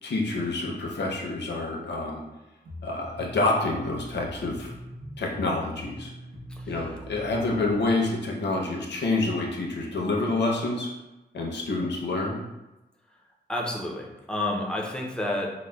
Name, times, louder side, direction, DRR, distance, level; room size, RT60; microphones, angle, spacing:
voice 1, 0.0-2.2 2.8-4.7 5.2-6.1 6.7-10.9 11.3-12.5, left 2 dB, 80° left, -1 dB, 0.6 m, -27 dB
sound 1, 2.6-8.0, equal, 70° right, 1.1 m, -42 dB
voice 2, 6.5-6.9 13.5-15.5, left 1 dB, 5° left, -2 dB, 0.4 m, -30 dB
5.0 x 2.0 x 2.2 m, 1.0 s
wide cardioid pair, 165°, 18 cm